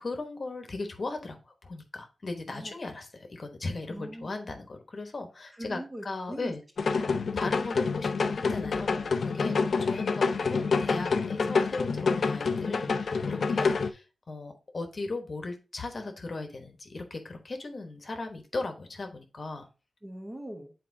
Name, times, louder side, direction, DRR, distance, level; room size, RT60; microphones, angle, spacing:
voice 1, 0.0-6.6 7.3-9.5 9.8-19.7, left 3 dB, 40° left, 5 dB, 1.1 m, -37 dB
voice 2, 3.9-4.4 5.5-6.5 6.8-7.3 9.4-9.6 20.0-20.7, right 1 dB, 20° right, 3 dB, 1.1 m, -41 dB
sound 1, 6.8-13.9, left 4 dB, 60° left, 0.5 m, -27 dB
8.4 x 4.3 x 2.7 m, 0.32 s
wide cardioid pair, 130°, 0 cm